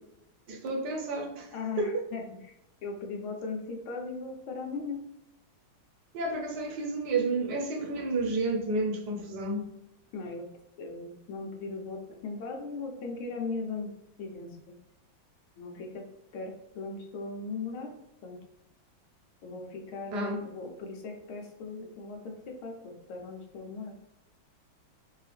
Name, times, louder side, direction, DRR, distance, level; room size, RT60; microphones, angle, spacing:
voice 1, 0.5-2.1 6.1-9.7 20.1-20.5, right 2 dB, 65° right, 1.3 m, -31 dB
voice 2, 1.5-2.5 2.8-5.0 10.1-10.5 10.8-13.9 14.2-14.8 15.6-16.1 16.3-17.9 18.2-18.4 19.4-23.9, left 4 dB, 85° left, 1.7 m, -38 dB
4.7 x 2.8 x 3.3 m
omnidirectional pair, 2.2 m